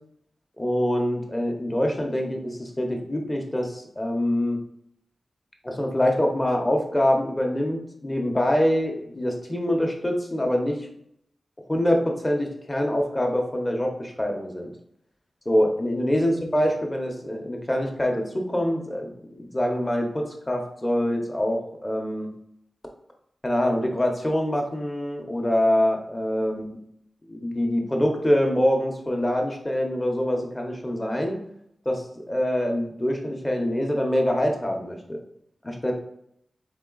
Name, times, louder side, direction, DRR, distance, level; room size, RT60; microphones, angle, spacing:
voice 1, 0.6-4.6 5.6-10.9 11.7-14.7 15.4-22.3 23.4-26.8 27.3-31.4 31.8-35.2 35.6-35.9, left 1 dB, 20° left, 2 dB, 0.8 m, -25 dB
3.8 x 3.6 x 3.8 m, 0.72 s
wide cardioid pair, 95°, 0 cm